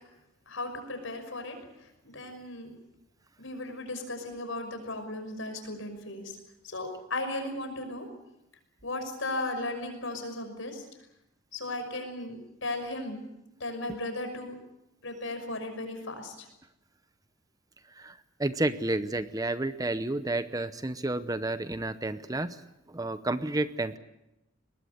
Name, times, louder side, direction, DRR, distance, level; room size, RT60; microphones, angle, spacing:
voice 1, 0.5-2.7 3.4-6.4 6.6-8.1 8.8-10.9 11.5-13.2 13.6-14.5 15.0-16.5, left 2 dB, 70° left, 6 dB, 5.9 m, -36 dB
voice 2, 18.0-22.6 22.9-24.0, right 2 dB, 15° right, 12 dB, 0.8 m, -31 dB
23.0 x 20.0 x 8.1 m, 0.90 s
head